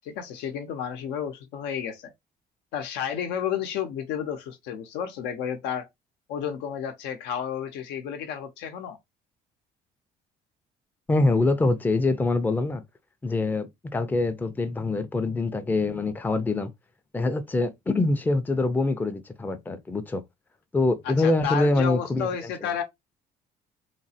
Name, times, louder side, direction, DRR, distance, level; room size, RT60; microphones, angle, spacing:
voice 1, 0.0-2.1 2.7-5.9 6.3-9.0 21.0-22.8, left 8 dB, 90° left, 0.7 m, -31 dB
voice 2, 11.1-12.8 13.2-16.7 17.1-20.2 20.7-22.7, left 2 dB, 10° left, 0.4 m, -25 dB
3.1 x 2.1 x 2.7 m
cardioid pair, 110°, 17 cm